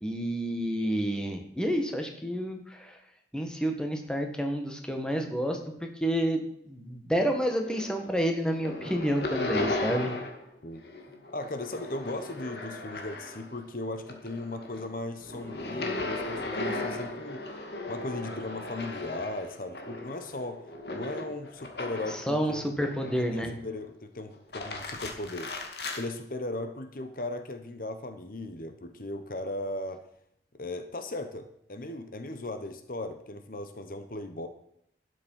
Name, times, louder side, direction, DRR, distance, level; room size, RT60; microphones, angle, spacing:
voice 1, 0.0-3.0 3.3-6.4 6.7-10.1 22.3-23.5, equal, 5° left, 3 dB, 1.7 m, -29 dB
sound 1, 7.5-8.2 8.5-10.5 10.8-13.6 14.0-22.3 22.8-23.5 24.3-26.0, left 2 dB, 70° left, 2.3 m, -36 dB
voice 2, 11.3-17.4 17.9-20.6 20.9-22.6 23.1-25.5 26.0-30.0 30.5-34.5, left 2 dB, 50° left, 8 dB, 1.1 m, -37 dB
12.5 x 9.8 x 5.7 m, 0.72 s
head